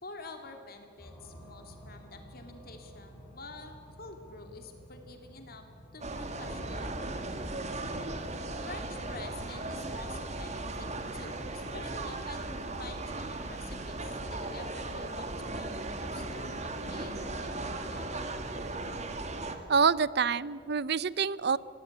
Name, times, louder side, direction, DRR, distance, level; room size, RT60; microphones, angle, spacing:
voice 1, 0.0-5.6 5.9-6.9 8.7-17.1 17.4-18.1, left 3 dB, 55° left, 5 dB, 2.5 m, -48 dB
sound 1, 1.0-20.8, equal, 10° left, 8.0 m, -56 dB
sound 2, 6.0-19.6, right 2 dB, 40° right, 2.1 m, -37 dB
voice 2, 19.7-21.6, right 6 dB, 60° right, 19 dB, 0.6 m, -26 dB
26.0 x 17.5 x 9.5 m, 2.4 s
head